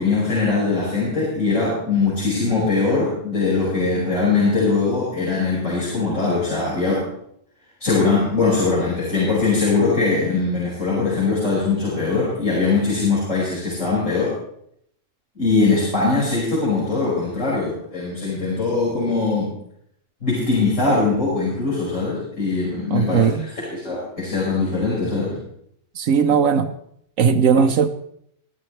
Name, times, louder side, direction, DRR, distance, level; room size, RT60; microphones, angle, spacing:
voice 1, 0.0-7.1 7.8-14.3 15.4-19.5 20.2-23.3 23.7-25.4, left 3 dB, 75° left, -8 dB, 6.1 m, -21 dB
voice 2, 22.9-23.5 25.9-26.7 27.2-27.9, right 6 dB, 85° right, 6 dB, 1.2 m, -18 dB
23.5 x 12.5 x 3.3 m, 0.71 s
omnidirectional pair, 1.3 m